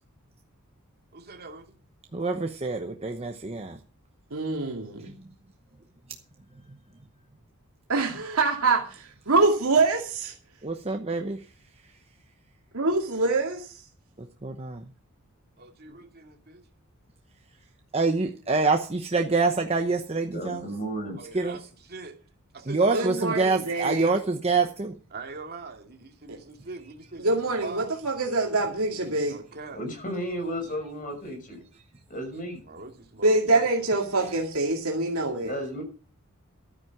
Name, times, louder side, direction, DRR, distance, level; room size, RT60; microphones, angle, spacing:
voice 1, 1.1-1.7 15.6-16.6 21.2-21.6 21.9-22.2 22.5-23.4 24.0-24.2 25.1-27.9 29.3-29.8 32.7-33.7, right 4 dB, 45° right, 3 dB, 2.4 m, -42 dB
voice 2, 2.1-3.8 5.2-5.3 10.6-11.5 14.2-14.8 17.9-20.7 21.3-21.6 22.7-24.9, right 3 dB, 30° right, 4 dB, 1.0 m, -26 dB
voice 3, 4.3-5.2 7.9-10.3 12.7-13.8 22.9-24.1 26.3-26.4 27.2-29.4 33.2-35.5, right 3 dB, 75° right, 0 dB, 2.4 m, -25 dB
voice 4, 20.3-21.2 29.7-31.6 32.1-32.6 35.4-35.8, equal, 40° left, 3 dB, 6.2 m, -33 dB
13.0 x 9.6 x 5.9 m, 0.39 s
head